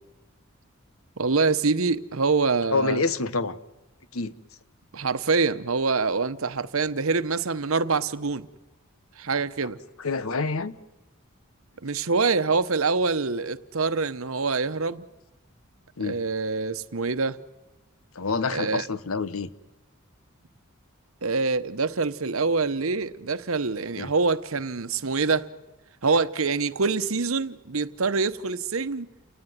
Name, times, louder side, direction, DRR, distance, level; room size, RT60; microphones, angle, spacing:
voice 1, 1.2-3.0 4.9-8.5 9.2-9.8 11.8-15.0 16.0-17.4 18.5-18.9 21.2-25.5 26.0-29.1, right 4 dB, 75° right, 1.0 m, -25 dB
voice 2, 2.7-3.6 4.1-4.3 10.0-10.7 16.0-16.2 18.1-19.5 24.0-24.1, left 4 dB, 75° left, 1.1 m, -27 dB
29.0 x 19.0 x 9.5 m
head